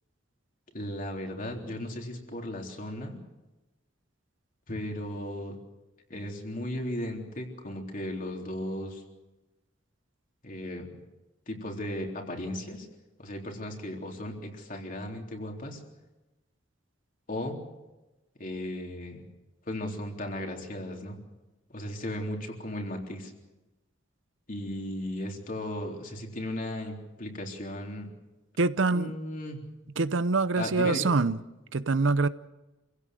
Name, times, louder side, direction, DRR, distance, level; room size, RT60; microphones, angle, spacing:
voice 1, 0.7-3.2 4.7-5.6 6.1-9.0 10.4-10.9 11.5-12.9 13.2-15.8 17.3-17.6 18.4-19.2 19.7-21.2 21.7-23.3 24.5-28.1 28.9-29.6 30.6-31.1, left 1 dB, 45° left, 3.7 m, -36 dB
voice 2, 28.6-29.1 30.0-31.4 31.7-32.3, right 3 dB, 70° right, 0.7 m, -25 dB
27.0 x 16.5 x 7.7 m
head